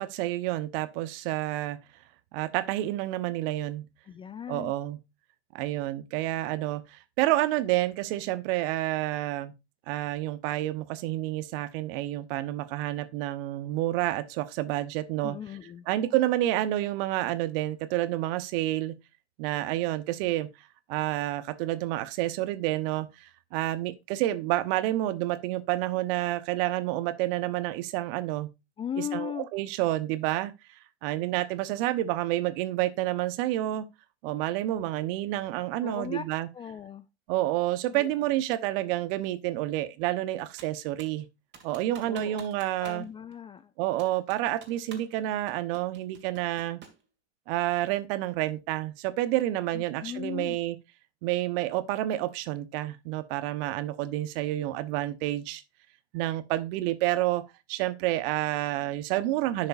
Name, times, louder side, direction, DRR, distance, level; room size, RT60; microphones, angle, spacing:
voice 1, 0.0-1.8 2.3-3.8 4.5-5.0 5.5-9.5 9.9-15.4 15.9-18.9 19.4-20.5 20.9-28.5 29.0-30.5 31.0-33.8 34.2-36.5 37.3-41.3 41.6-43.0 43.8-46.8 47.5-50.8 51.2-55.6 56.1-57.4 57.7-59.7, right 15 dB, 55° right, 1.1 m, -29 dB
voice 2, 4.0-4.7 15.2-15.9 28.8-29.5 35.8-36.2 36.5-37.1 37.9-38.1 42.0-42.4 42.8-43.7 49.7-50.6, left 9 dB, 15° left, 0.3 m, -37 dB
Computer keyboard, 40.6-41.2 41.5-43.1 43.3-43.4 44.0-45.2 45.5-47.0, right 6 dB, 30° right, 2.3 m, -50 dB
10.5 x 6.5 x 2.6 m
hypercardioid pair, 95°, 34 cm